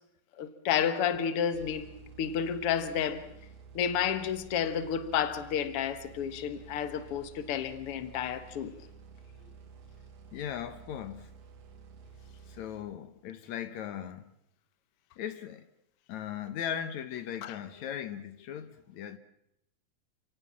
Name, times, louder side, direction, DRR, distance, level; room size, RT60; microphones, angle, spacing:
voice 1, 0.4-1.9 2.2-3.2 3.7-8.8 17.4-17.6, left 8 dB, 55° left, 2.1 m, -31 dB
sound 1, 1.5-13.2, right 6 dB, 85° right, 3.3 m, -52 dB
voice 2, 10.3-11.3 12.5-14.3 15.2-15.7 16.1-19.2, left 9 dB, 75° left, 2.4 m, -38 dB
29.5 x 17.0 x 7.4 m
omnidirectional pair, 3.4 m